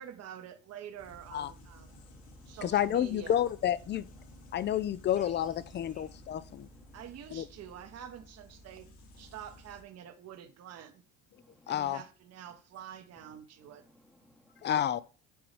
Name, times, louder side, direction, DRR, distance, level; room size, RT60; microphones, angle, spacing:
voice 1, 0.0-2.0 2.5-3.5 6.9-8.9 9.2-11.0 11.7-13.8, right 9 dB, 50° right, 1.1 m, -47 dB
sound 1, 1.0-9.8, left 1 dB, 65° left, 1.7 m, -54 dB
voice 2, 1.9-2.6 4.1-4.8 5.1-7.0 11.3-11.9 13.6-14.7, equal, ahead, 1.0 m, -62 dB
voice 3, 2.6-4.1 4.5-6.7 7.3-7.4 11.7-12.0 14.6-15.0, left 10 dB, 35° left, 0.5 m, -30 dB
6.2 x 4.7 x 3.3 m
supercardioid pair, 85°, 32 cm